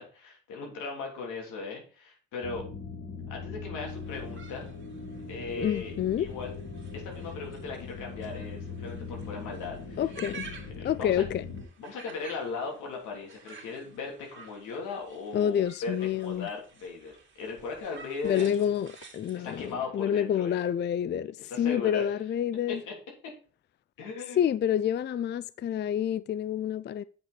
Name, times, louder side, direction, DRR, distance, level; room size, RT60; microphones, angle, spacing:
voice 1, 0.0-2.6 3.3-4.7 5.3-6.5 6.9-10.0 10.7-11.2 11.8-17.1 17.4-18.7 19.3-20.6 21.4-22.1 22.7-22.9 24.0-24.4, left 4 dB, 90° left, 3.2 m, -38 dB
sound 1, 2.4-11.6, left 4 dB, 55° left, 3.4 m, -40 dB
sound 2, 3.8-19.7, right 5 dB, 40° right, 2.5 m, -51 dB
voice 2, 5.6-6.3 10.0-10.5 10.8-11.4 15.3-16.5 18.2-22.8 24.4-27.0, left 9 dB, 35° left, 0.4 m, -28 dB
8.4 x 5.7 x 4.3 m
cardioid pair, 90°, 30 cm